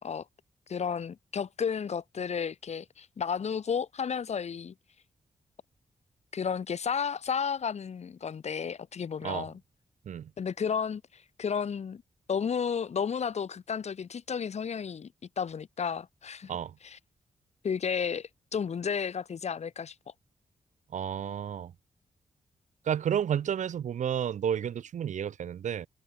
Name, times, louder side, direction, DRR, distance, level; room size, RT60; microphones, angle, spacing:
voice 1, 0.7-4.7 6.3-9.6 10.4-12.0 12.3-15.1 15.4-16.5 16.8-17.0 17.6-19.9, left 6 dB, 65° left, 3.8 m, -32 dB
voice 2, 20.9-21.7 22.9-25.9, right 9 dB, 85° right, 2.5 m, -31 dB
cardioid pair, 85°, 12 cm